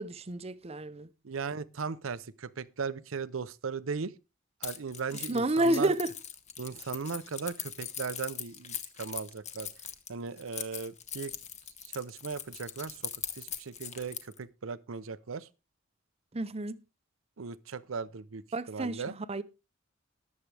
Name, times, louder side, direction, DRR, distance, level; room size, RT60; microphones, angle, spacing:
voice 1, 0.0-1.1 5.3-6.1 16.3-16.8 18.5-19.4, right 1 dB, 30° right, 0.7 m, -30 dB
voice 2, 1.2-4.1 4.6-5.9 6.6-9.7 10.1-11.3 11.8-15.5 17.4-19.1, right 5 dB, 85° right, 0.7 m, -37 dB
Keys jangling, 4.6-14.4, left 8 dB, 35° left, 1.1 m, -41 dB
19.5 x 7.4 x 3.3 m
head